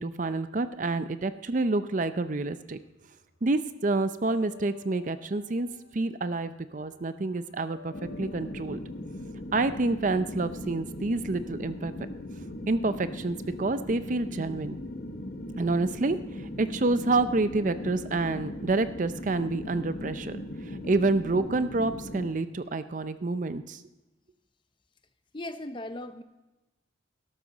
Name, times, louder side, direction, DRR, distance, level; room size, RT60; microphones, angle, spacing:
voice 1, 0.0-2.8 3.4-5.7 5.9-7.9 8.2-8.8 9.5-11.9 12.7-14.7 15.6-23.8, right 3 dB, 40° right, 12 dB, 0.5 m, -28 dB
sound 1, 2.5-3.0 3.3-11.2, left 8 dB, 80° left, 4.0 m, -54 dB
sound 2, 7.9-22.3, left 1 dB, 50° left, 1.1 m, -39 dB
voice 2, 25.3-26.2, left 1 dB, 25° left, 10 dB, 0.6 m, -37 dB
12.5 x 12.5 x 4.0 m, 1.0 s
head